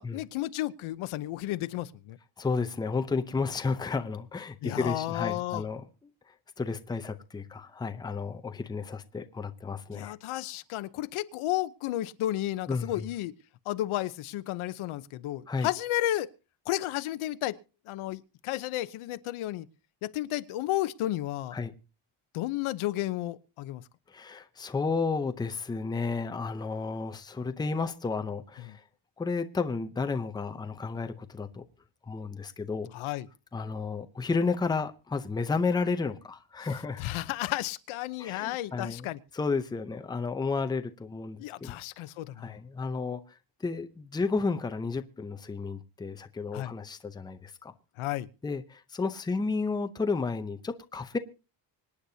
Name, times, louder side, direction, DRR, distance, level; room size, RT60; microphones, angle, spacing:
voice 1, 0.0-2.2 4.6-5.6 9.9-13.3 13.7-16.3 16.7-17.6 17.9-19.7 20.0-21.5 22.3-23.8 28.7-28.8 32.9-33.3 37.0-39.2 41.4-42.6 46.5-46.7 48.0-48.3, left 15 dB, 85° left, 0.9 m, -32 dB
voice 2, 2.4-5.8 6.6-10.1 12.7-13.1 15.5-15.7 21.5-21.7 24.1-28.8 29.2-31.6 32.1-32.9 33.5-37.0 38.2-41.8 42.4-47.7 48.4-51.2, left 4 dB, 10° left, 0.6 m, -32 dB
25.5 x 9.8 x 2.8 m
cardioid pair, 180°, 48 cm